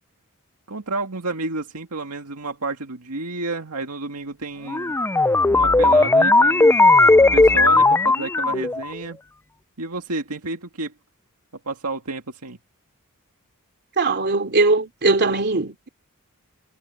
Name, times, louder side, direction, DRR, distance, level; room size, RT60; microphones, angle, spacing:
voice 1, 0.7-5.0 5.5-6.8 7.3-9.2 9.8-10.9 11.7-12.6, right 3 dB, 85° right, 2.1 m, -30 dB
sound 1, 4.7-8.9, left 2 dB, 10° left, 0.3 m, -16 dB
voice 2, 14.0-15.9, right 3 dB, 50° right, 3.0 m, -20 dB
head